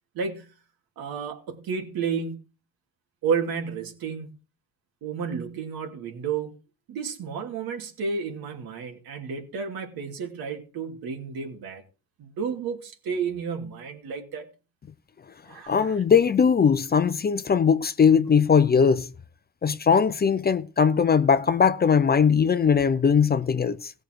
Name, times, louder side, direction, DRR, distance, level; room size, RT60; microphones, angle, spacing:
voice 1, 0.1-0.5 1.0-2.4 3.2-4.3 5.0-6.6 6.9-11.8 12.2-14.5 15.5-16.0, right 6 dB, 75° right, 2.8 m, -31 dB
voice 2, 15.7-19.1 19.6-23.9, left 6 dB, 25° left, 0.5 m, -20 dB
17.5 x 6.5 x 4.6 m
cardioid pair, 125°, 36 cm